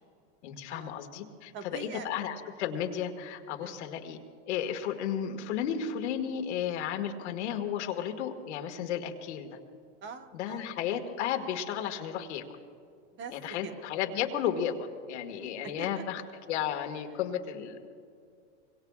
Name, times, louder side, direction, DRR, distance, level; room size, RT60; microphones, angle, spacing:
voice 1, 0.4-4.2 4.5-9.6 10.3-12.4 13.3-16.2 16.5-17.8, left 9 dB, 85° left, 4 dB, 1.8 m, -33 dB
voice 2, 1.5-2.1 3.6-3.9 10.0-10.7 13.1-13.4 13.6-13.7 15.4-16.0, right 6 dB, 35° right, 7 dB, 1.3 m, -43 dB
25.5 x 23.5 x 2.4 m, 2.3 s
supercardioid pair, 130°, 34 cm